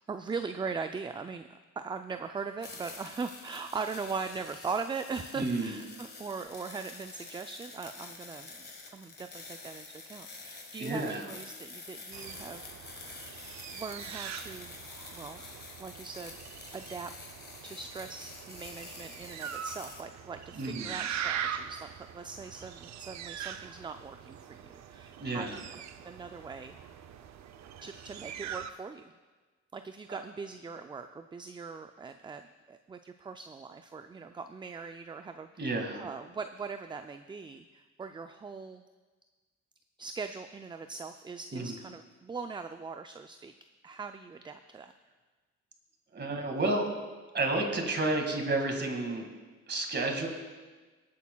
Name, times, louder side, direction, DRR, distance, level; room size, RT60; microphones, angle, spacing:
voice 1, 0.0-8.5 8.9-13.0 13.7-14.8 15.1-15.4 15.8-16.4 16.7-17.1 17.6-26.8 27.8-29.1 29.7-35.7 36.0-38.8 40.0-43.5 43.8-44.9, right 5 dB, 15° right, 8 dB, 0.3 m, -40 dB
sound 1, 2.6-20.0, left 3 dB, 35° left, 1.6 m, -48 dB
voice 2, 5.3-5.7 10.8-11.3 20.6-20.9 25.2-25.6 35.6-36.0 41.5-41.7 46.1-46.9 47.3-49.3 49.7-50.3, right 2 dB, 35° right, 3 dB, 2.0 m, -31 dB
sound 2, 12.1-28.7, right 9 dB, 65° right, 0.6 m, -42 dB
24.0 x 8.5 x 2.3 m, 1.3 s
cardioid pair, 90°, 30 cm